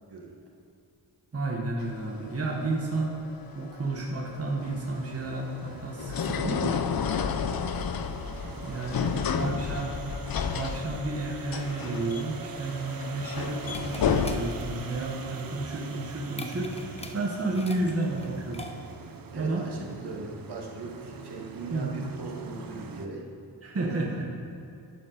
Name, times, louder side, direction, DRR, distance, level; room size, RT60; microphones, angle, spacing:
voice 1, 1.3-3.2 3.5-6.8 8.6-9.0 9.4-10.0 10.5-18.6 19.3-19.6 21.7-22.0 23.6-24.3, right 2 dB, 35° right, -2 dB, 1.2 m, -31 dB
sound 1, 1.8-14.3, left 6 dB, 60° left, 0.6 m, -31 dB
sound 2, 4.6-23.1, right 5 dB, 55° right, 0.8 m, -43 dB
voice 2, 8.4-9.7 19.3-23.2 23.9-24.0, right 3 dB, 70° right, -2 dB, 1.9 m, -40 dB
sound 3, 12.9-19.1, left 1 dB, 15° left, 0.7 m, -45 dB
11.5 x 5.4 x 6.5 m, 2.7 s
wide cardioid pair, 125°, 41 cm